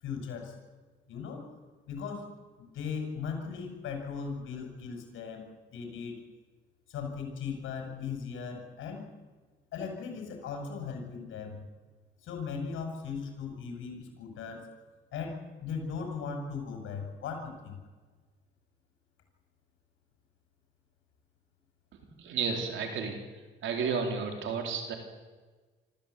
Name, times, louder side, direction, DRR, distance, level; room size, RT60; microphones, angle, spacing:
voice 1, 0.0-0.5 1.1-1.4 1.9-2.3 2.6-6.2 6.9-9.1 9.7-11.6 12.2-14.7 15.1-17.8, left 5 dB, 85° left, 3 dB, 6.3 m, -38 dB
voice 2, 22.2-23.2 23.6-24.9, right 5 dB, 75° right, 4 dB, 4.1 m, -32 dB
24.5 x 14.5 x 8.5 m, 1.4 s
cardioid pair, 90°, 20 cm